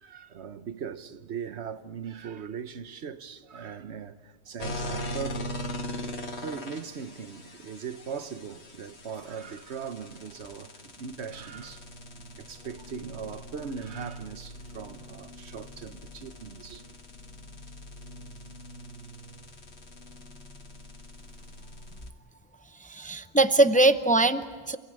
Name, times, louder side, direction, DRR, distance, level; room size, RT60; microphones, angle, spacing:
voice 1, 0.0-5.6 6.4-11.9 12.3-16.8, right 6 dB, 85° right, 1.3 m, -39 dB
sound 1, 4.6-22.1, left 1 dB, 90° left, 2.0 m, -41 dB
voice 2, 22.7-24.8, right 2 dB, 10° left, 0.6 m, -22 dB
29.5 x 18.5 x 9.0 m
omnidirectional pair, 1.1 m